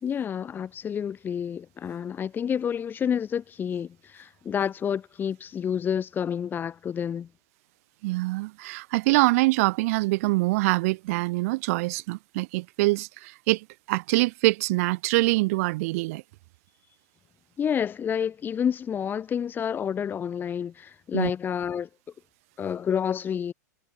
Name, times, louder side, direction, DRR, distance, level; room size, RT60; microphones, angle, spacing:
voice 1, 0.0-7.3 17.6-21.9 22.6-23.5, left 8 dB, 20° left, 2.7 m, -29 dB
voice 2, 8.0-16.2 21.1-21.3, right 22 dB, 55° right, 1.9 m, -24 dB
hypercardioid pair, 130°, 10 cm